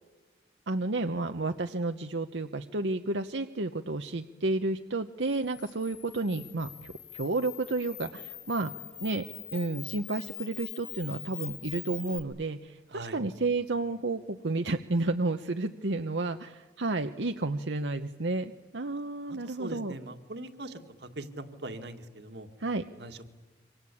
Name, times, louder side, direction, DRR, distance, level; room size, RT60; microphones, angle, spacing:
voice 1, 0.7-8.7 9.0-9.3 9.5-20.0 22.6-22.8, right 2 dB, 90° right, 7 dB, 1.0 m, -31 dB
Camera, 5.2-12.2, left 15 dB, 55° left, 3.8 m, -44 dB
voice 2, 12.9-13.2 19.3-22.5 23.0-23.3, right 2 dB, 70° right, 7 dB, 2.0 m, -41 dB
27.0 x 25.5 x 8.5 m, 1.2 s
head